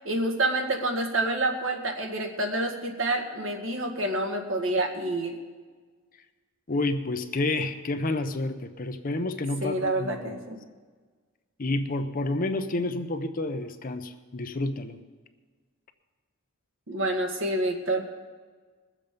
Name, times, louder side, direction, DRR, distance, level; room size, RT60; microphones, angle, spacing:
voice 1, 0.0-5.4 9.6-10.6 16.9-18.1, right 1 dB, 70° right, 3 dB, 1.9 m, -28 dB
voice 2, 6.7-10.4 11.6-15.0, left 2 dB, 45° left, 8 dB, 0.8 m, -29 dB
21.0 x 7.5 x 5.2 m, 1.4 s
head